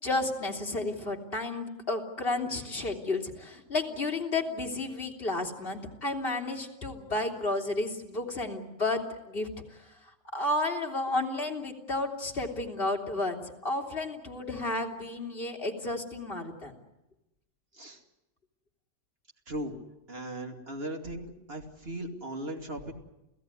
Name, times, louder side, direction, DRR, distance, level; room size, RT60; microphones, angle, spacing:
voice 1, 0.0-9.9 10.3-16.7, left 2 dB, 35° left, 1 dB, 3.2 m, -32 dB
voice 2, 20.1-22.9, right 1 dB, 35° right, 3 dB, 2.8 m, -38 dB
29.5 x 16.5 x 9.8 m, 0.94 s
omnidirectional pair, 1.8 m